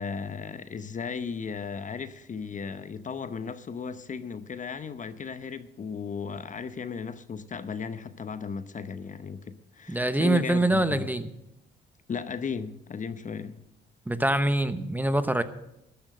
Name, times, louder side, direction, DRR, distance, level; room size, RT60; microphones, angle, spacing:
voice 1, 0.0-11.1 12.1-13.6, left 6 dB, 40° left, 12 dB, 0.9 m, -35 dB
voice 2, 9.9-11.3 14.1-15.4, right 1 dB, 10° right, 11 dB, 0.9 m, -24 dB
12.5 x 10.5 x 6.6 m, 0.83 s
cardioid pair, 90°, 20 cm